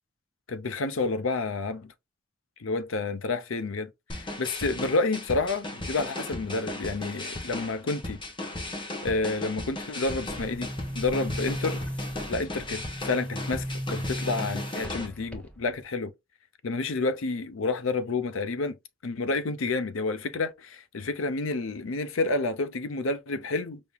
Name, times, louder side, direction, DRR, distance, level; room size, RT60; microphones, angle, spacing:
voice 1, 0.5-1.9 2.6-8.2 9.0-10.7 10.9-11.8 12.3-16.1 16.6-18.8 19.0-23.8, left 3 dB, 80° left, 0.6 m, -29 dB
sound 1, 4.1-15.1, left 1 dB, 25° left, 1.0 m, -36 dB
Boom, 10.0-15.8, equal, 5° left, 0.8 m, -36 dB
5.1 x 2.9 x 2.3 m
head